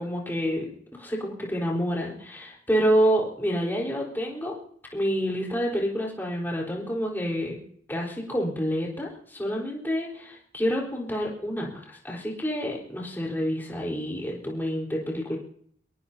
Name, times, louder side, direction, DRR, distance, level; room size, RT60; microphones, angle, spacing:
voice 1, 0.0-4.6 4.9-7.6 7.9-15.4, equal, 10° left, -3 dB, 4.2 m, -28 dB
22.0 x 22.0 x 2.8 m, 0.65 s
head